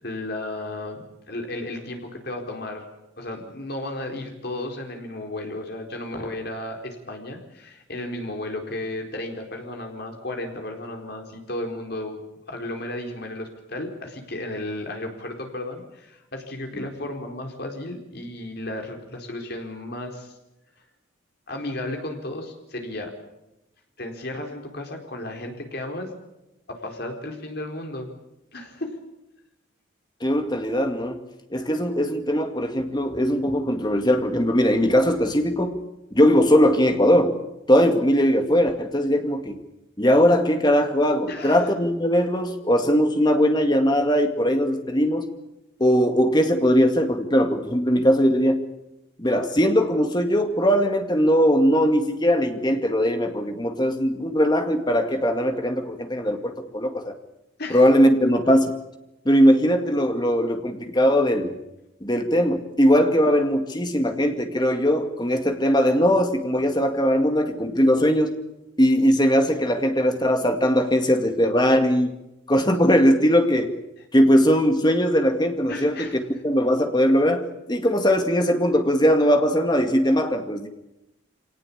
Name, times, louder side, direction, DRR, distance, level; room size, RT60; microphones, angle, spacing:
voice 1, 0.0-2.9 3.2-12.2 12.5-20.3 21.5-23.1 24.0-26.1 26.7-28.1 28.5-29.0 41.3-41.6 57.6-57.8 75.7-76.2, left 1 dB, 50° left, 3 dB, 4.4 m, -34 dB
voice 2, 30.2-31.2 31.5-35.8 36.1-37.3 37.7-39.6 40.0-45.3 45.8-48.6 49.2-57.2 57.7-58.8 59.3-61.6 62.0-68.3 68.8-72.1 72.5-73.7 74.1-76.1 76.4-80.7, equal, 20° left, 6 dB, 2.1 m, -20 dB
25.0 x 18.5 x 8.7 m, 0.91 s
head